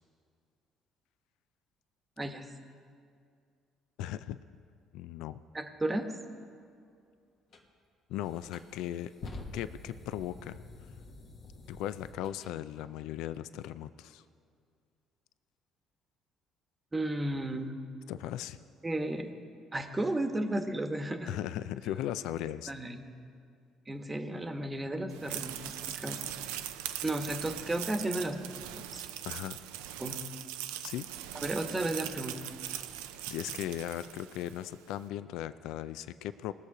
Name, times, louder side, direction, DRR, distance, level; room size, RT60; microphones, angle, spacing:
voice 1, 4.0-4.4 4.9-5.4 8.1-9.1 9.5-10.6 11.7-14.2 18.1-18.6 21.3-22.7 29.2-29.6 30.8-31.1 33.3-36.5, left 12 dB, 75° left, 14 dB, 0.3 m, -37 dB
voice 2, 5.5-6.1 16.9-17.8 18.8-19.4 19.7-21.3 22.7-23.1 23.9-26.2 27.0-28.6 28.9-29.0 30.0-30.2 31.3-32.4, right 1 dB, 20° right, 6 dB, 1.1 m, -33 dB
sound 1, 7.5-7.7 8.3-12.5, left 2 dB, 60° left, 1.5 m, -47 dB
sound 2, 25.1-34.6, right 12 dB, 90° right, 0.4 m, -40 dB
19.5 x 6.7 x 4.9 m, 2.3 s
supercardioid pair, 70°, 0 cm